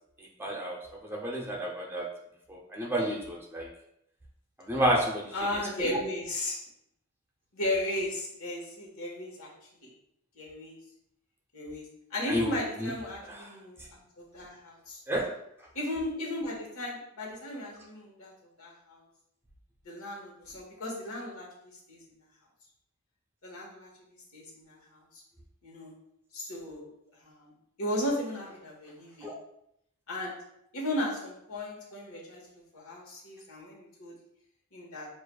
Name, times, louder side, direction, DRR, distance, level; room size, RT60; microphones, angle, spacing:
voice 1, 0.2-2.1 2.5-3.7 4.6-6.0 12.3-12.9 13.3-13.5 15.1-15.3 29.2-29.3, equal, 10° right, -2 dB, 0.5 m, -31 dB
voice 2, 5.3-6.6 7.5-9.5 9.8-9.9 10.3-10.8 11.5-15.0 15.7-18.3 18.6-19.0 19.8-22.2 23.4-23.9 24.3-25.0 25.6-25.9 26.3-26.9 27.2-27.5 27.8-29.3 30.1-30.3 30.7-32.4 32.7-34.1 34.7-35.1, left 1 dB, 90° left, -3 dB, 1.3 m, -35 dB
6.4 x 2.5 x 2.2 m, 0.77 s
head